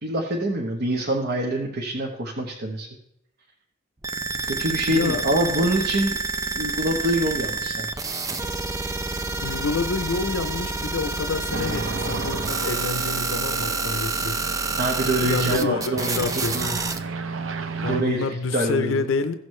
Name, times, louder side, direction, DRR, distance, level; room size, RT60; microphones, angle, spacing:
voice 1, 0.0-2.9 4.4-6.2 6.6-7.9 14.8-16.2 16.5-16.7 17.9-19.1, right 1 dB, 50° right, 1.0 m, -25 dB
sound 1, 4.0-17.0, right 3 dB, 15° right, 0.5 m, -28 dB
voice 2, 4.9-5.2 9.4-14.5 15.2-16.8 17.8-19.3, left 4 dB, 75° left, 0.6 m, -28 dB
sound 2, 11.5-18.0, right 3 dB, 80° right, 0.7 m, -33 dB
15.5 x 6.4 x 3.2 m
head